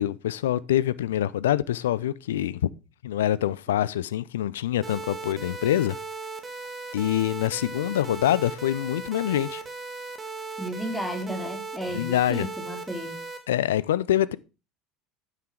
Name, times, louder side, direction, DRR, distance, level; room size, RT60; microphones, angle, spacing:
voice 1, 0.0-2.6 3.0-6.0 6.9-9.6 11.9-12.5 13.5-14.4, left 12 dB, 75° left, 0.4 m, -25 dB
sound 1, 4.8-13.4, right 3 dB, 25° right, 2.0 m, -37 dB
voice 2, 10.6-13.2, equal, 5° left, 2.7 m, -33 dB
8.6 x 5.9 x 4.8 m
figure-of-eight pair, 70°, 0 cm